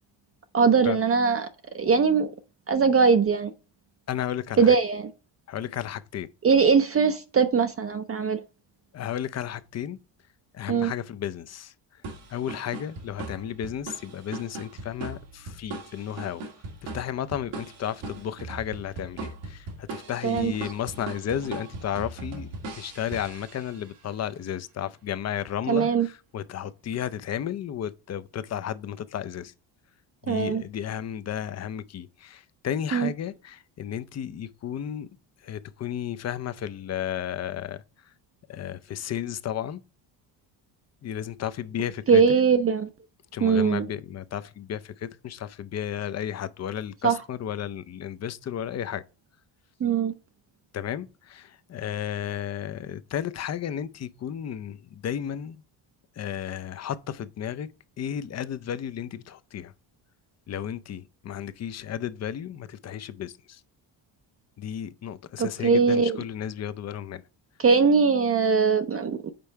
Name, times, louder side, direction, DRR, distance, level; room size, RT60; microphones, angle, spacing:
voice 1, 0.5-1.5 1.7-2.3 2.7-3.5 4.6-5.1 6.4-8.4 10.7-10.9 20.2-20.5 25.7-26.1 30.3-30.6 32.9-33.1 42.1-42.9 43.4-43.9 47.0-47.2 49.8-50.1 65.4-66.2 67.6-69.3, right 5 dB, 30° right, 0.5 m, -21 dB
voice 2, 4.1-4.8 5.5-6.3 8.9-10.0 10.5-12.0 12.3-16.4 16.8-22.5 22.7-29.5 30.2-35.1 35.4-37.8 38.5-39.8 41.0-42.2 43.3-49.0 50.7-55.6 56.2-57.7 58.0-59.7 60.5-63.6 64.6-67.2, left 10 dB, 35° left, 0.5 m, -33 dB
sound 1, 12.0-24.0, right 3 dB, 85° right, 1.7 m, -39 dB
5.2 x 4.3 x 4.6 m
cardioid pair, 90°, 45 cm